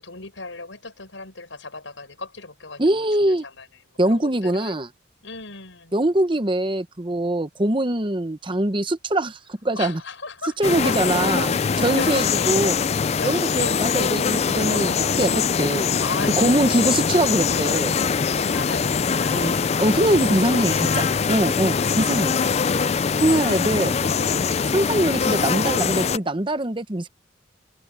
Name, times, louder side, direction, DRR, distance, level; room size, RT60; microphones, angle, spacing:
voice 1, 0.0-3.7 4.1-4.8 5.2-6.0 9.8-10.9 11.5-12.6 13.2-14.1 14.6-15.1 16.0-16.5 17.4-21.1 21.7-22.1 23.4-23.7 24.0-24.8 25.3-25.7 26.0-26.4, left 4 dB, 80° left, 5.7 m, -37 dB
voice 2, 2.8-3.4 4.0-4.9 5.9-10.0 10.6-12.8 13.2-15.9 16.4-18.0 19.3-19.5 19.8-22.4 23.2-24.0 24.7-27.1, right 1 dB, 25° right, 0.9 m, -23 dB
sound 1, 10.6-26.2, left 6 dB, 35° left, 0.4 m, -22 dB
head